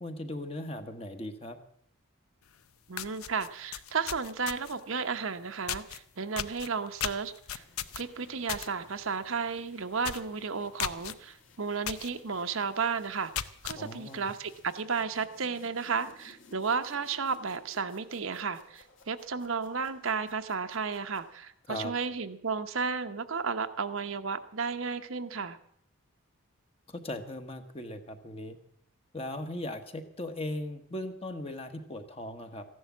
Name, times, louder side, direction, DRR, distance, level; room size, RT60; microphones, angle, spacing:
voice 1, 0.0-1.6 13.8-14.3 21.7-21.9 26.9-28.6 29.1-32.6, left 1 dB, 25° left, 7 dB, 1.2 m, -38 dB
sound 1, 2.5-2.6 2.9-4.8 5.7-6.0 6.4-8.7 9.0-9.3 9.6-9.7 10.0-10.3 10.8-11.1 11.9-12.1 12.6-12.7 13.1-13.8, left 10 dB, 80° left, 0.7 m, -36 dB
voice 2, 2.9-7.6 7.9-13.3 13.6-25.6, right 5 dB, 65° right, 8 dB, 0.9 m, -33 dB
sound 2, 7.4-21.7, left 2 dB, 60° left, 2.6 m, -60 dB
14.5 x 11.0 x 7.2 m, 0.68 s
head